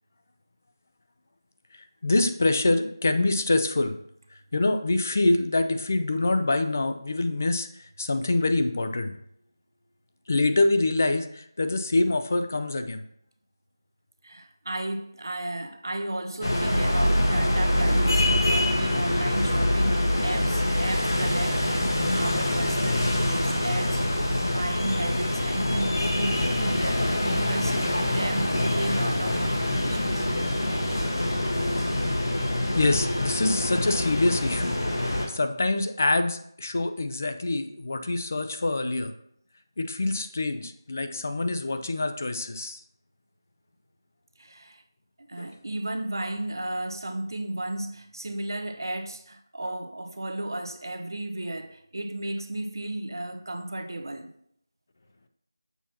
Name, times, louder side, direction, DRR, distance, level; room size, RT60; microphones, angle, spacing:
voice 1, 2.0-4.0 4.5-7.7 8.0-9.1 10.3-13.0 32.7-34.8 35.1-39.1 39.8-42.8 45.4-45.5, left 2 dB, 35° left, 0.5 m, -25 dB
voice 2, 14.2-30.2 44.4-44.8 45.2-54.3, right 1 dB, 65° right, 0.8 m, -34 dB
sound 1, 16.4-35.3, left 1 dB, 65° left, 1.5 m, -25 dB
6.8 x 3.0 x 5.8 m
figure-of-eight pair, 175°, 2 cm